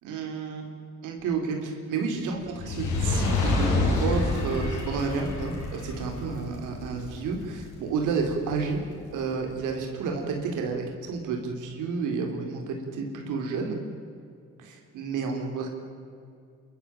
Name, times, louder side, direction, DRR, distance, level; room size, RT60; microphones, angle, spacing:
voice 1, 0.0-0.7 1.0-8.8 9.1-13.8 14.6-15.7, right 4 dB, 90° right, 2 dB, 3.8 m, -31 dB
Fire, 2.5-8.9 9.6-9.7, left 2 dB, 85° left, 7.0 m, -28 dB
27.5 x 14.0 x 9.2 m, 2.3 s
cardioid pair, 90°, 30 cm